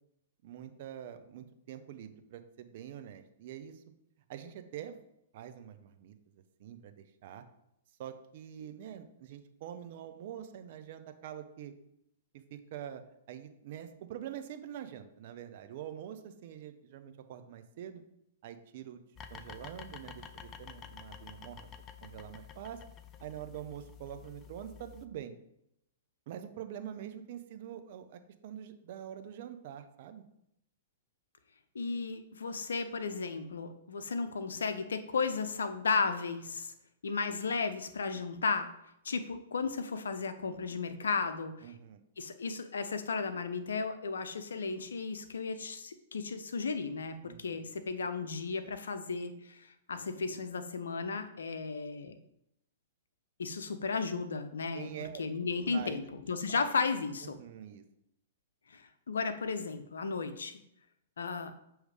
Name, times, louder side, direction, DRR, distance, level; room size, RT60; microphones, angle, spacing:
voice 1, 0.4-3.8 4.3-5.0 5.3-7.4 8.0-11.7 12.3-13.0 13.3-18.0 18.4-19.0 19.3-21.7 22.0-22.8 23.2-25.3 26.3-30.2 41.6-42.0 47.2-47.7 54.7-55.2 55.7-56.0 56.5-56.7 57.2-57.8, right 10 dB, 55° right, 8 dB, 0.7 m, -45 dB
sound 1, 19.2-25.1, left 7 dB, 25° left, 0.5 m, -50 dB
voice 2, 31.7-36.7 37.0-38.7 39.0-41.7 42.2-52.1 53.4-54.9 55.2-57.4 58.7-60.5 61.2-61.5, left 4 dB, 80° left, 9 dB, 0.7 m, -34 dB
6.5 x 3.2 x 4.9 m, 0.79 s
hypercardioid pair, 120°, 0 cm